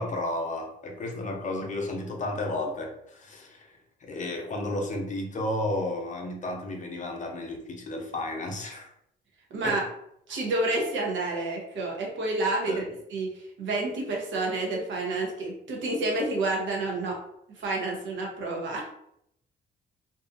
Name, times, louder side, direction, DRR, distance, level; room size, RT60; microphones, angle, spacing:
voice 1, 0.0-3.7 4.0-8.9 9.6-9.8 12.7-12.9, left 1 dB, 40° left, 2 dB, 0.6 m, -32 dB
voice 2, 10.3-17.2 17.5-18.9, right 2 dB, 70° right, -1 dB, 0.9 m, -29 dB
2.6 x 2.4 x 2.4 m, 0.74 s
cardioid pair, 90°, 20 cm